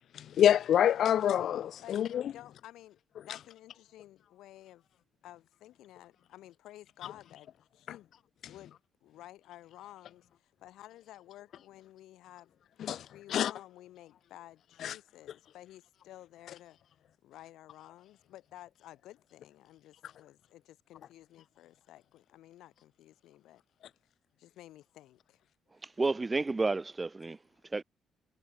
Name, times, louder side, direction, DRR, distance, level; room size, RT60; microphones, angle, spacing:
voice 1, 0.1-2.3 8.4-8.5 12.8-13.5 14.8-15.0, left 10 dB, 70° left, 1.4 m, -27 dB
voice 2, 2.3-3.0 3.2-4.8 5.2-8.1 8.5-12.5 13.1-16.8 17.2-23.6 24.4-25.4, left 14 dB, 85° left, 6.1 m, -53 dB
voice 3, 25.8-27.8, right 3 dB, 20° right, 3.1 m, -31 dB
cardioid pair, 90°, 0 cm